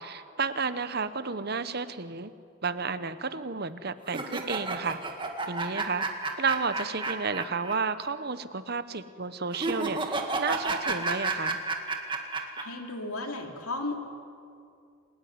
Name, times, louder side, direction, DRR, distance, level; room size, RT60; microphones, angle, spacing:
voice 1, 0.0-2.3 2.6-5.0 5.5-6.1 6.4-11.6, right 4 dB, 45° right, 13 dB, 1.0 m, -32 dB
sound 1, 4.1-7.7 8.0-8.1 9.5-12.6, right 3 dB, 20° right, 2.0 m, -31 dB
voice 2, 12.4-14.0, left 2 dB, 90° left, 3 dB, 3.3 m, -35 dB
29.0 x 18.5 x 9.6 m, 2.4 s
head